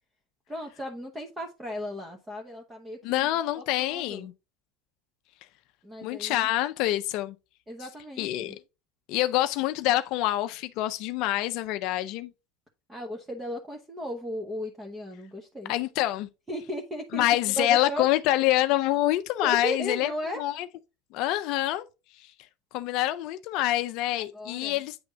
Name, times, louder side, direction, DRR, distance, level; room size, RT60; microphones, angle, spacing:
voice 1, 0.5-3.3 3.5-4.3 5.8-6.5 7.7-8.5 12.9-15.7 16.5-17.2 17.6-18.1 19.4-20.4 24.2-24.8, left 1 dB, 15° right, 1.0 m, -36 dB
voice 2, 3.0-4.3 6.0-7.3 8.2-8.6 9.1-12.3 15.7-16.3 17.1-20.1 20.4-20.7 21.1-21.9 22.2-22.3 22.7-25.0, left 15 dB, 60° left, 0.4 m, -26 dB
8.7 x 3.4 x 3.8 m
supercardioid pair, 115°, 0 cm